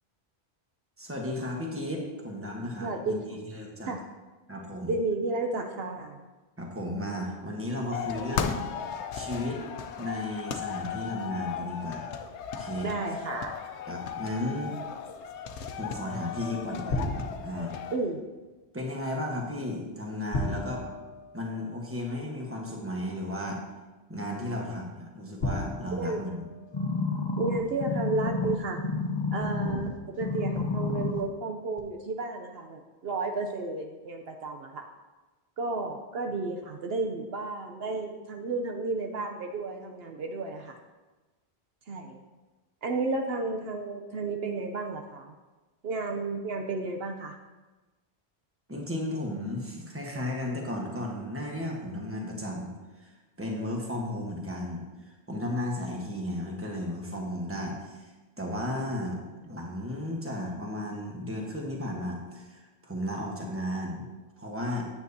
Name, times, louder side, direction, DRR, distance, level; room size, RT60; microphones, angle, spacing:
voice 1, 1.0-3.9 4.5-4.9 6.6-8.6 9.1-9.6 10.0-12.1 12.6-12.9 13.9-14.7 15.7-17.0 17.4-17.7 18.7-20.9 21.3-23.6 24.1-26.4 48.7-52.7 53.0-58.1 58.4-64.1 64.4-64.9, left 1 dB, 15° right, -1 dB, 1.1 m, -34 dB
voice 2, 2.8-3.2 3.9-4.0 4.9-6.2 12.8-13.6 17.9-18.2 24.3-24.7 26.0-26.2 27.4-28.8 29.3-34.8 35.6-40.8 41.9-42.2 42.8-45.3 45.8-47.4, right 3 dB, 70° right, 3 dB, 0.9 m, -32 dB
sound 1, 7.9-18.0, left 7 dB, 90° left, 0.9 m, -36 dB
sound 2, 16.9-17.9 20.3-22.0 23.2-23.3 25.4-27.1, left 2 dB, 65° left, 1.1 m, -34 dB
sound 3, 26.7-29.9 30.2-31.2 31.8-31.9, left 3 dB, 30° left, 0.7 m, -30 dB
9.1 x 8.2 x 2.7 m, 1.2 s
omnidirectional pair, 1.1 m